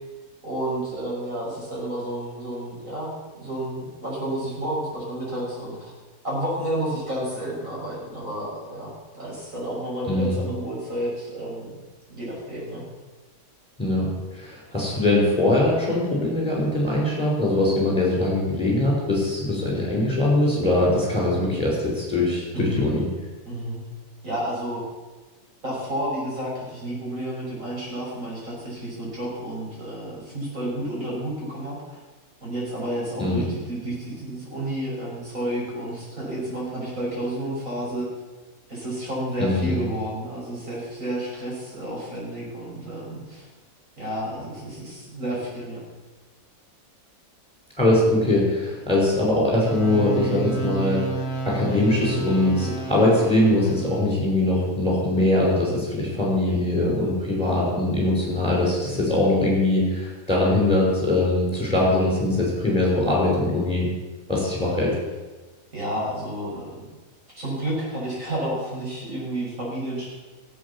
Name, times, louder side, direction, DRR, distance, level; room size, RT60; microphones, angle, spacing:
voice 1, 0.4-5.9 6.2-11.8 12.1-12.8 22.5-22.9 23.5-23.8 24.2-24.8 25.6-32.0 32.4-38.1 38.7-43.5 44.0-45.8 65.7-66.8 67.3-70.1, right 1 dB, 60° right, -5 dB, 6.2 m, -31 dB
voice 2, 10.1-10.4 13.8-23.0 33.2-33.4 39.4-39.8 47.8-51.1 51.4-63.9 64.3-65.0, left 1 dB, 5° left, -4 dB, 5.6 m, -22 dB
sound 1, 49.6-54.1, right 4 dB, 20° right, 2.0 m, -31 dB
15.5 x 8.1 x 7.2 m, 1.2 s
omnidirectional pair, 1.5 m